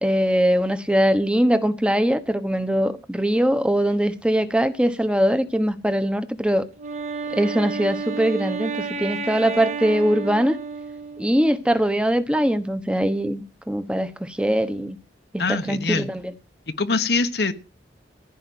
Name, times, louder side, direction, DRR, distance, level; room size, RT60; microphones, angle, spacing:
voice 1, 0.0-6.7 7.3-10.6 11.2-15.0 15.3-16.3, equal, 5° right, 1.1 m, -22 dB
Wind instrument woodwind instrument, 6.8-11.5, right 4 dB, 40° right, 1.4 m, -31 dB
voice 2, 15.4-16.1 16.8-17.5, left 3 dB, 65° left, 1.1 m, -23 dB
15.0 x 5.6 x 9.5 m
head